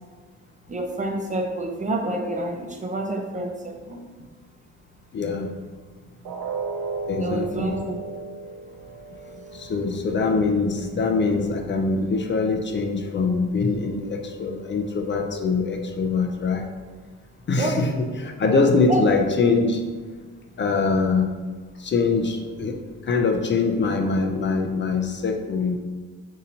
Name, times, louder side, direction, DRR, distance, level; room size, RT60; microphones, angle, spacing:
voice 1, 0.7-4.0 7.1-8.0 17.5-17.8 18.9-19.0, right 1 dB, 25° right, 1 dB, 0.5 m, -28 dB
voice 2, 5.1-5.5 7.1-7.8 9.5-16.6 17.5-19.8 20.6-21.3 21.8-22.8 23.1-25.8, left 4 dB, 40° left, 3 dB, 0.4 m, -23 dB
sound 1, 6.2-12.2 12.6-12.8 13.3-13.4, right 4 dB, 70° right, 0.6 m, -36 dB
4.0 x 2.7 x 2.8 m, 1.4 s
cardioid pair, 90°, 30 cm